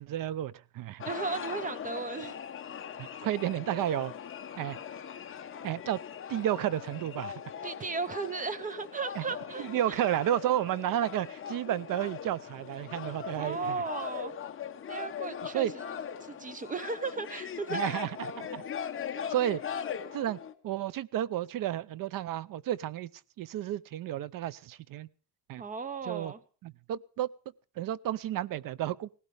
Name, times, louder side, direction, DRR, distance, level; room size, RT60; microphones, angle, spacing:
voice 1, 0.0-1.0 3.0-4.1 4.6-4.8 5.6-6.0 6.3-7.3 9.2-9.3 9.6-13.8 15.5-15.7 17.7-18.6 19.3-19.6 20.1-20.4 20.6-23.1 23.4-25.1 25.5-25.6 26.0-26.3 26.6-27.3 27.8-29.1, right 12 dB, 50° right, 0.6 m, -32 dB
sound 1, 1.0-20.5, left 8 dB, 30° left, 1.2 m, -40 dB
voice 2, 1.0-2.4 7.6-10.0 13.4-14.3 14.9-15.8 16.2-17.8 25.6-26.4, right 4 dB, 20° right, 0.9 m, -36 dB
18.5 x 16.5 x 3.4 m
cardioid pair, 155°, 44 cm